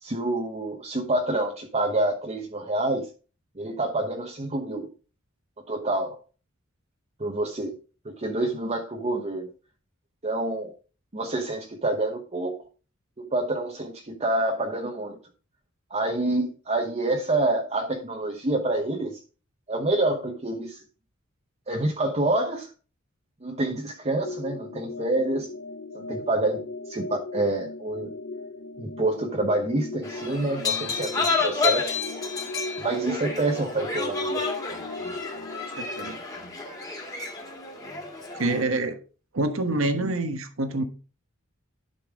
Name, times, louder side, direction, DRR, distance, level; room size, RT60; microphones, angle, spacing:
voice 1, 0.0-3.1 3.6-4.9 5.7-6.2 7.2-7.8 8.0-9.5 10.2-10.7 11.1-12.6 13.2-15.2 15.9-19.2 19.7-20.8 21.7-22.7 23.4-25.5 25.9-28.1 28.8-31.9 32.8-34.4, right 2 dB, 30° right, 2 dB, 1.0 m, -27 dB
sound 1, 24.2-36.1, left 2 dB, 60° left, 0.6 m, -38 dB
sound 2, 30.0-38.6, left 4 dB, 20° left, 2.3 m, -30 dB
voice 2, 35.8-36.2 38.3-39.0 39.3-40.8, right 2 dB, 70° right, 8 dB, 1.3 m, -26 dB
11.5 x 5.5 x 3.7 m, 0.35 s
head